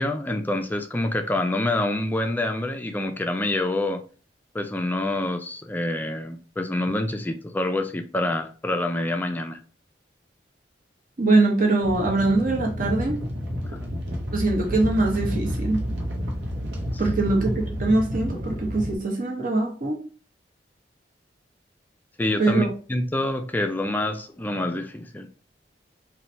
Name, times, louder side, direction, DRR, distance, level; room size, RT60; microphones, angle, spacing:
voice 1, 0.0-4.0 4.5-9.6 13.6-13.9 22.2-25.3, left 1 dB, 10° left, 0.3 m, -27 dB
voice 2, 11.2-13.2 14.3-15.8 17.0-20.0 22.4-22.7, right 2 dB, 50° right, 0.9 m, -22 dB
sound 1, 11.8-19.0, equal, 75° right, 0.8 m, -30 dB
3.1 x 2.2 x 2.6 m
head